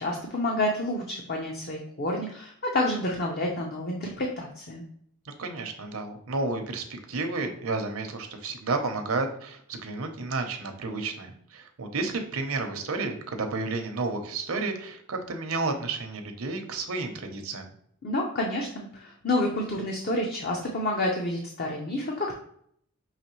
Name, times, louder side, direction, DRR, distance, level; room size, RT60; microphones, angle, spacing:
voice 1, 0.0-4.8 18.0-22.3, left 1 dB, 45° left, 0 dB, 0.6 m, -29 dB
voice 2, 5.2-17.7, right 3 dB, 75° right, 5 dB, 0.7 m, -31 dB
5.7 x 3.1 x 3.0 m, 0.66 s
head